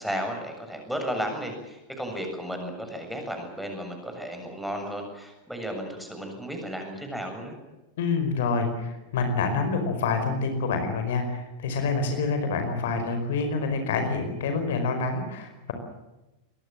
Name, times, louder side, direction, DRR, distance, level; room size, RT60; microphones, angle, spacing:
voice 1, 0.0-7.5, equal, ahead, 3 dB, 7.2 m, -34 dB
voice 2, 8.0-15.7, left 4 dB, 55° left, 7 dB, 4.9 m, -27 dB
25.0 x 21.5 x 7.6 m, 1.0 s
figure-of-eight pair, 90°, 0 cm